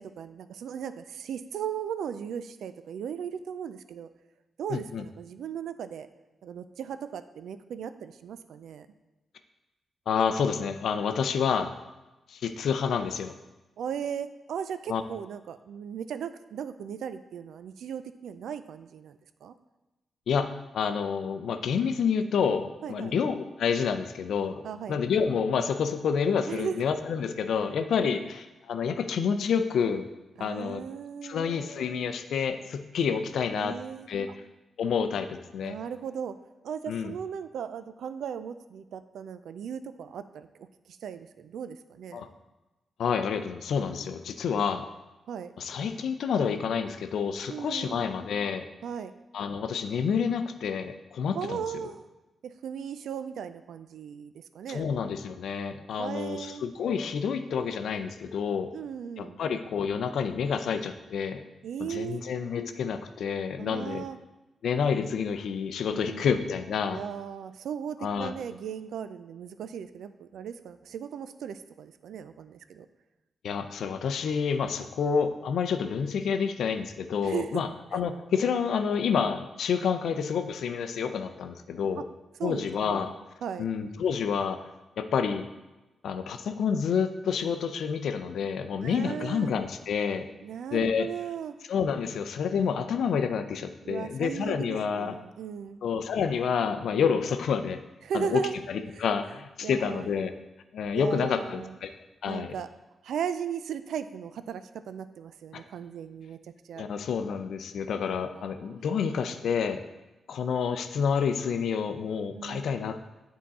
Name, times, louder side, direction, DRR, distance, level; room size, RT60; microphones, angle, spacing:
voice 1, 0.0-4.1 4.6-6.1 6.4-8.9 13.8-19.5 22.8-23.1 24.6-25.0 26.5-26.9 28.0-28.2 30.4-31.6 33.6-34.4 35.6-36.3 36.6-40.5 40.9-42.3 45.3-45.5 47.5-48.1 48.8-49.1 51.3-52.1 52.4-54.9 56.0-56.6 58.7-59.4 61.6-62.2 63.6-64.2 65.9-66.2 66.9-72.9 77.2-77.6 77.9-78.0 82.0-82.1 82.4-83.1 83.4-83.7 88.8-89.5 90.4-91.5 93.8-95.8 98.0-98.6 99.0-99.1 99.6-100.1 100.9-101.8 102.2-102.7 103.0-104.6 104.9-106.8 108.3-108.8 112.3-112.7, right 8 dB, 80° right, 11 dB, 0.4 m, -37 dB
voice 2, 4.7-5.0 10.1-11.7 12.3-13.3 14.9-15.0 20.3-24.6 24.9-30.1 30.4-30.8 31.2-33.8 34.1-34.3 34.8-35.8 36.9-37.1 42.1-42.3 43.0-44.9 45.6-48.6 49.3-51.9 54.7-58.7 59.2-61.4 61.8-64.0 64.6-67.0 68.0-68.3 73.4-82.0 82.4-83.1 83.6-84.6 85.0-85.5 86.0-90.3 90.7-91.1 91.7-95.2 95.8-97.8 98.1-98.4 98.7-100.3 100.7-101.9 102.2-102.5 105.5-105.6 106.8-109.8 110.3-113.0, left 6 dB, 75° left, 9 dB, 0.5 m, -28 dB
8.5 x 3.8 x 4.1 m, 1.1 s
cardioid pair, 60°, 0 cm